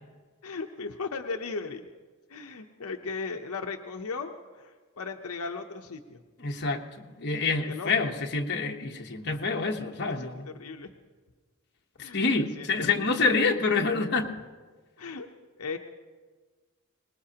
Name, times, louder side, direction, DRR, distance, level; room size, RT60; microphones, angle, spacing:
voice 1, 0.4-1.8 2.3-6.2 7.7-8.1 9.3-9.4 10.0-10.9 12.0-13.4 15.0-15.3 15.6-15.8, left 4 dB, 75° left, 4 dB, 0.8 m, -37 dB
voice 2, 6.4-10.5 12.0-14.3, left 4 dB, 50° left, 2 dB, 1.1 m, -27 dB
23.5 x 20.0 x 2.9 m, 1.4 s
head